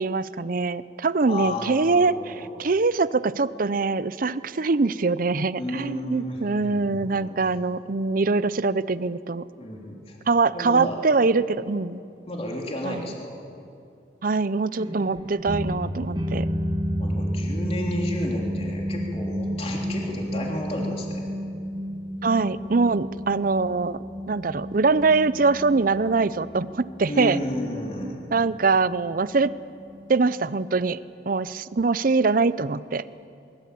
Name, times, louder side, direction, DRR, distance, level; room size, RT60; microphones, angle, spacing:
voice 1, 0.0-9.4 10.3-12.0 12.8-13.0 14.2-16.5 22.2-24.0 24.3-27.4 28.0-29.5 30.1-31.0 31.3-33.0, right 4 dB, 55° right, 16 dB, 0.6 m, -23 dB
voice 2, 1.3-2.5 5.6-7.3 9.6-10.2 10.5-11.1 12.3-13.3 17.0-21.2 27.1-28.2, left 1 dB, 35° left, -1 dB, 3.4 m, -32 dB
sound 1, 14.8-30.9, equal, 25° right, 1.8 m, -32 dB
23.0 x 22.0 x 8.5 m, 2.6 s
head